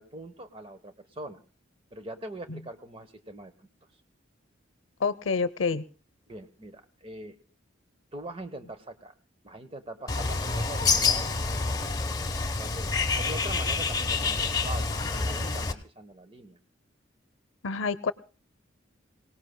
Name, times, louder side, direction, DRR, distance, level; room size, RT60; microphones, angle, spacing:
voice 1, 0.0-1.4 1.9-3.7 6.3-7.4 8.1-9.1 9.4-11.9 12.6-16.6, right 1 dB, 30° right, 9 dB, 1.0 m, -42 dB
voice 2, 5.0-5.8 17.6-18.1, left 4 dB, 85° left, 16 dB, 0.7 m, -28 dB
Bird, 10.1-15.7, left 4 dB, 20° left, 0.9 m, -27 dB
26.5 x 18.0 x 2.2 m, 0.37 s
head